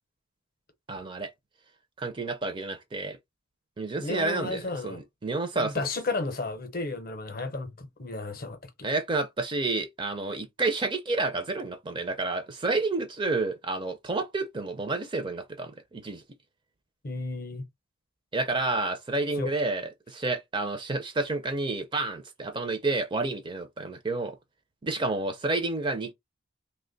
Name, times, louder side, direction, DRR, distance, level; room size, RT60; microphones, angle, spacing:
voice 1, 0.9-1.3 2.0-3.2 3.8-5.9 8.8-16.2 18.3-24.4 24.8-26.1, right 3 dB, 20° right, 0.4 m, -30 dB
voice 2, 4.0-5.0 5.5-8.9 17.0-17.7 19.4-19.5, left 3 dB, 45° left, 0.7 m, -33 dB
2.9 x 2.1 x 3.8 m
head